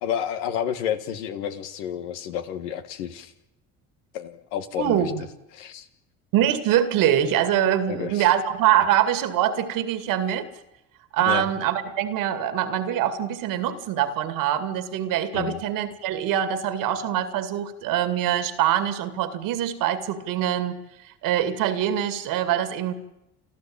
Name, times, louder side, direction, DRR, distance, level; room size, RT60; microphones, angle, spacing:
voice 1, 0.0-3.3 4.1-5.0 5.5-5.9 7.9-8.2 11.2-11.5 15.3-15.6, left 9 dB, 90° left, 10 dB, 1.7 m, -30 dB
voice 2, 4.8-5.2 6.3-10.5 11.1-20.8 21.2-22.9, right 10 dB, 75° right, 12 dB, 2.3 m, -24 dB
29.0 x 12.0 x 8.8 m, 0.91 s
supercardioid pair, 80°, 34 cm